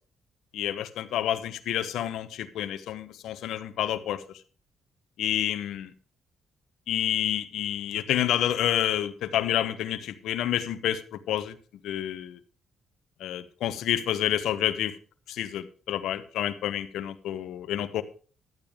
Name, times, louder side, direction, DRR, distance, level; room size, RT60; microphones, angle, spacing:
voice 1, 0.5-4.2 5.2-5.9 6.9-11.6 11.8-12.4 13.2-14.9 15.3-18.0, left 11 dB, 80° left, 10 dB, 1.0 m, -29 dB
12.5 x 9.0 x 5.0 m, 0.39 s
cardioid pair, 90°, 0 cm